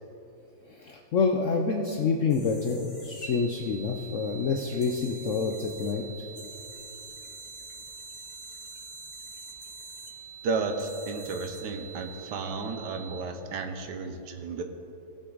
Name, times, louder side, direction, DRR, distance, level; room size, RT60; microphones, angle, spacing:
voice 1, 0.8-6.0, left 4 dB, 65° left, 2 dB, 0.7 m, -27 dB
sound 1, 2.3-12.3, left 1 dB, 25° left, 1.7 m, -50 dB
sound 2, 3.2-13.2, right 8 dB, 55° right, 1.4 m, -46 dB
voice 2, 10.4-14.6, right 4 dB, 70° right, 6 dB, 1.4 m, -33 dB
18.5 x 6.3 x 3.9 m, 3.0 s
omnidirectional pair, 2.0 m